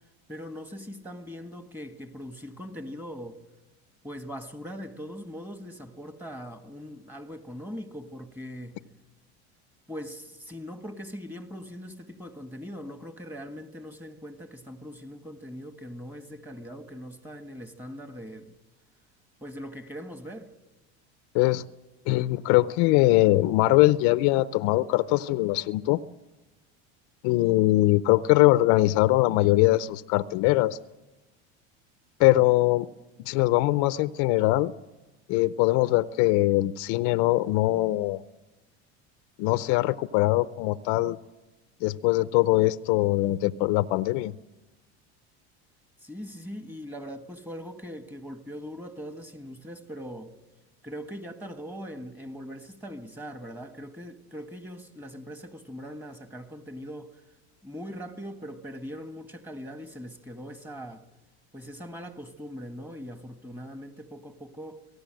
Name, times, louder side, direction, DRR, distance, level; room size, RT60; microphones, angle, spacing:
voice 1, 0.3-3.4 4.0-8.8 9.9-18.5 19.4-20.5 46.0-50.4 50.8-57.2 57.6-61.0 61.5-64.9, equal, 5° right, 1.7 m, -41 dB
voice 2, 22.1-26.0 27.2-30.8 32.2-32.9 33.2-34.7 35.3-38.2 39.4-41.2 41.8-44.3, left 18 dB, 60° left, 0.7 m, -22 dB
26.0 x 18.0 x 7.7 m
supercardioid pair, 125°, 33 cm